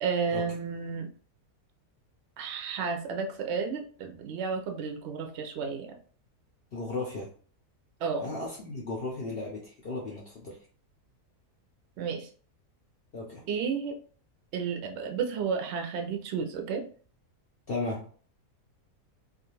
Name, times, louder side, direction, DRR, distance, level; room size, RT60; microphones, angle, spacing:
voice 1, 0.0-1.1 2.4-5.9 8.0-8.3 12.0-12.3 13.5-13.9 14.5-16.9, right 5 dB, 65° right, 3 dB, 0.7 m, -32 dB
voice 2, 6.7-7.3 8.2-10.7 13.1-13.4 17.7-18.1, left 2 dB, 65° left, -2 dB, 0.6 m, -35 dB
2.4 x 2.4 x 2.9 m, 0.43 s
omnidirectional pair, 1.6 m